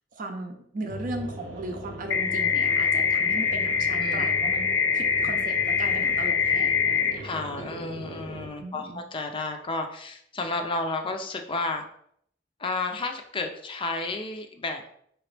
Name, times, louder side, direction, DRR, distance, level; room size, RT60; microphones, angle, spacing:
voice 1, 0.1-7.2 7.6-7.7 8.6-9.0, right 2 dB, 45° right, 4 dB, 0.6 m, -37 dB
sound 1, 0.9-8.5, right 1 dB, 85° right, 0.9 m, -39 dB
sound 2, 2.1-7.1, left 7 dB, 70° left, 0.7 m, -24 dB
voice 2, 4.0-4.3 5.2-5.3 7.2-11.8 12.6-14.8, left 3 dB, 30° left, 5 dB, 0.4 m, -32 dB
4.9 x 2.9 x 3.2 m, 0.67 s
head